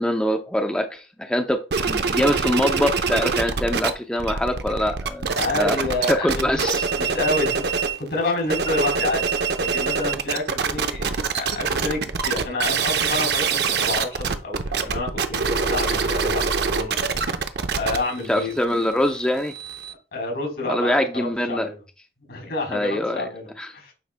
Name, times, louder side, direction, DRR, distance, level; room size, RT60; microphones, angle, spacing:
voice 1, 0.0-5.3 5.6-5.8 6.1-6.9 18.3-19.5 20.7-21.7 22.7-23.3 23.6-23.7, left 1 dB, 5° left, 5 dB, 0.5 m, -23 dB
sound 1, 1.7-8.0 8.4-19.9, right 5 dB, 65° right, 0.7 m, -24 dB
voice 2, 5.4-6.5 7.0-9.2 9.6-17.0 17.8-18.5 20.1-21.8 22.3-23.9, left 2 dB, 70° left, 2 dB, 3.7 m, -28 dB
9.3 x 5.4 x 2.2 m, 0.32 s
head